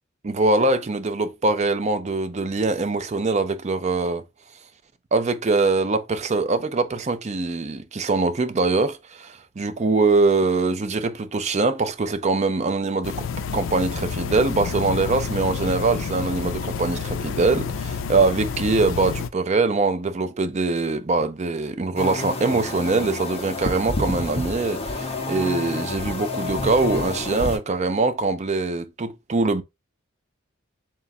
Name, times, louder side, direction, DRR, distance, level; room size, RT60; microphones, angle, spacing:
voice 1, 0.2-4.2 5.1-13.3 13.5-29.6, right 3 dB, 35° right, 0.5 m, -23 dB
sound 1, 13.0-19.3, left 6 dB, 75° left, 0.4 m, -29 dB
sound 2, 22.0-27.6, left 2 dB, 30° left, 0.7 m, -29 dB
3.8 x 2.3 x 4.1 m
head